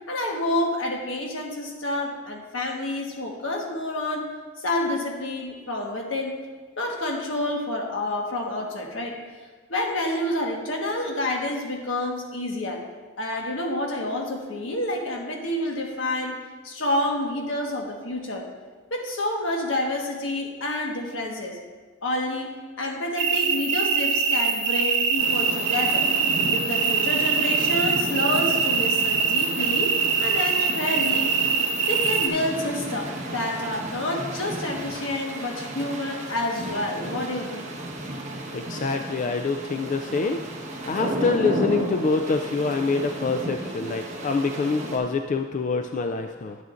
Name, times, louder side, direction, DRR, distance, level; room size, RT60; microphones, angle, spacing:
voice 1, 0.1-4.3 4.6-6.4 6.8-9.2 9.7-12.8 13.2-16.4 16.6-18.5 18.9-21.6 22.0-26.1 26.5-31.4 31.9-37.7, left 1 dB, 80° left, 1 dB, 1.4 m, -28 dB
sound 1, 23.2-32.3, right 6 dB, 70° right, 0.8 m, -23 dB
sound 2, 25.2-45.0, right 1 dB, 35° right, 1.2 m, -33 dB
voice 2, 38.5-40.5 40.9-46.6, left 4 dB, 40° left, 6 dB, 0.3 m, -26 dB
11.0 x 9.1 x 2.5 m, 1.4 s
head